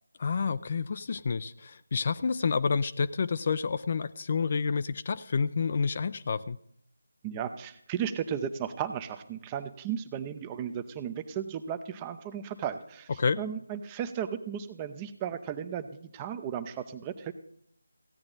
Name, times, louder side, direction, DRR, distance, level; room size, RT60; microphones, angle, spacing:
voice 1, 0.2-6.6 13.2-13.4, left 5 dB, 40° left, 13 dB, 0.4 m, -29 dB
voice 2, 7.2-13.1 13.4-17.3, right 8 dB, 15° right, 10 dB, 0.6 m, -35 dB
15.5 x 9.6 x 3.8 m, 0.70 s
figure-of-eight pair, 160°, 0 cm